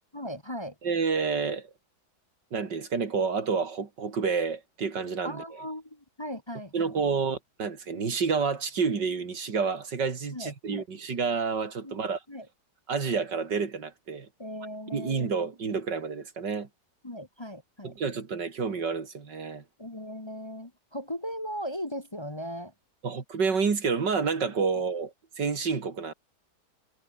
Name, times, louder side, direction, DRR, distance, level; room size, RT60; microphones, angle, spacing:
voice 1, 0.1-0.7 5.2-7.0 10.3-10.8 11.8-12.5 14.4-15.3 17.0-17.9 19.8-22.7, equal, 15° left, 1.4 m, -38 dB
voice 2, 0.8-1.7 2.5-5.4 6.7-12.2 12.9-14.3 14.9-16.7 17.8-19.6 23.0-26.1, right 5 dB, 80° right, 3.2 m, -29 dB
omnidirectional pair, 1.9 m